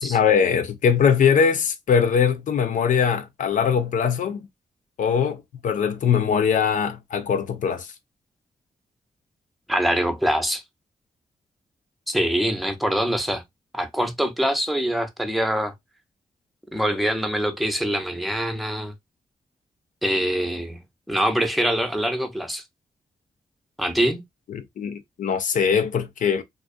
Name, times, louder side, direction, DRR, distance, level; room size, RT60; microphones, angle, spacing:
voice 1, 0.0-4.4 5.0-7.9 24.5-26.4, left 7 dB, 70° left, 0.4 m, -21 dB
voice 2, 9.7-10.6 12.1-13.4 13.7-15.7 16.7-18.9 20.0-20.8 21.1-22.6 23.8-24.2, equal, ahead, 0.7 m, -24 dB
2.3 x 2.3 x 2.5 m
cardioid pair, 60°, 14 cm